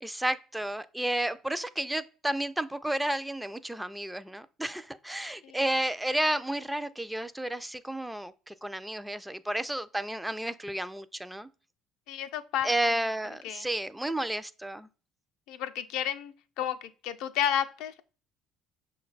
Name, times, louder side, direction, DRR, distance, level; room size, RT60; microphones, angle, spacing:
voice 1, 0.0-11.5 12.6-14.9, right 1 dB, 5° right, 0.3 m, -32 dB
voice 2, 12.1-12.7 13.4-13.6 15.5-18.0, left 10 dB, 75° left, 0.4 m, -32 dB
5.8 x 2.2 x 3.9 m
supercardioid pair, 80°, 0 cm